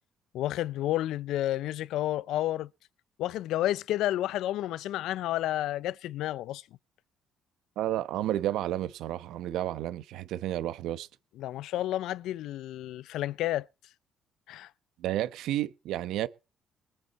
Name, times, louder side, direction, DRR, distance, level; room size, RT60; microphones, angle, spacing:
voice 1, 0.3-2.7 3.2-6.6 11.4-13.7 14.5-14.7, left 14 dB, 75° left, 0.7 m, -31 dB
voice 2, 7.8-11.1 15.0-16.3, right 13 dB, 75° right, 1.1 m, -31 dB
23.5 x 8.4 x 4.3 m
cardioid pair, 175°, 0 cm